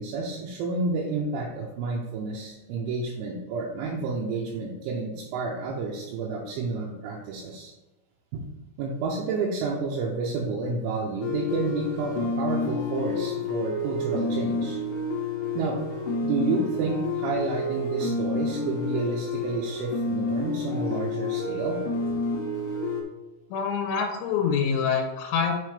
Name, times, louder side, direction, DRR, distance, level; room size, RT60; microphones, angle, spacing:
voice 1, 0.0-7.7 8.3-8.5 8.8-14.8 15.6-15.8 16.2-21.8, right 4 dB, 80° right, -2 dB, 2.9 m, -30 dB
sound 1, 11.2-23.0, left 3 dB, 70° left, 2.9 m, -29 dB
voice 2, 23.5-25.5, left 6 dB, 85° left, 1 dB, 3.5 m, -25 dB
9.8 x 4.3 x 3.3 m, 1.1 s
omnidirectional pair, 6.0 m